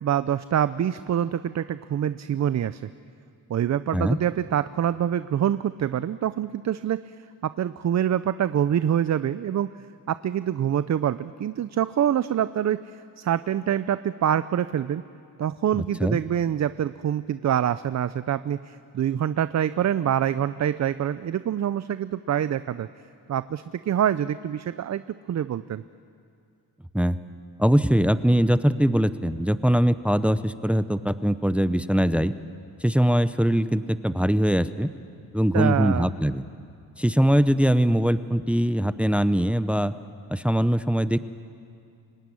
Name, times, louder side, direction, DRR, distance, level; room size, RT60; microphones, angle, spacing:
voice 1, 0.0-2.8 3.5-7.1 7.4-9.7 10.1-12.8 13.2-15.0 15.4-22.9 23.3-25.0 25.3-25.8 35.5-36.1, right 10 dB, 45° right, 14 dB, 0.6 m, -25 dB
voice 2, 27.6-32.3 32.8-34.9 35.3-36.4 37.0-39.9 40.3-41.2, equal, 5° right, 13 dB, 0.7 m, -22 dB
26.5 x 17.0 x 9.8 m, 2.4 s
cardioid pair, 90°, 39 cm